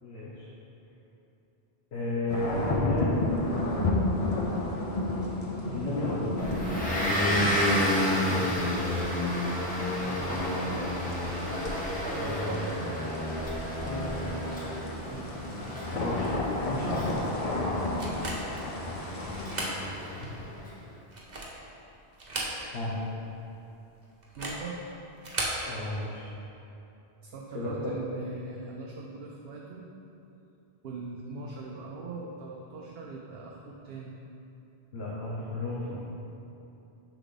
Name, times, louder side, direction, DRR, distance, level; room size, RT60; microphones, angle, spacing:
voice 1, 0.0-0.5 1.9-3.2 5.7-6.6 8.2-8.5 12.2-12.6 13.8-14.4 15.8-17.5 20.1-20.3 22.7-22.9 25.6-26.3 27.5-28.0 34.9-36.0, left 1 dB, 75° left, -6 dB, 1.2 m, -33 dB
sound 1, 2.3-19.7, left 2 dB, 35° left, 0.8 m, -33 dB
Motor vehicle (road) / Engine, 6.4-20.6, left 1 dB, 10° left, 1.2 m, -31 dB
voice 2, 10.0-10.9 12.0-13.3 15.1-15.7 24.4-24.8 27.2-29.9 30.8-34.1, right 3 dB, 70° right, -1 dB, 0.8 m, -40 dB
sound 2, 18.0-18.7 19.3-19.8 20.2-20.3 21.0-21.7 22.1-22.9 23.2-23.3 24.2-24.7 25.2-25.6, right 2 dB, 45° right, 1.1 m, -35 dB
6.7 x 6.0 x 4.0 m, 2.9 s
omnidirectional pair, 1.1 m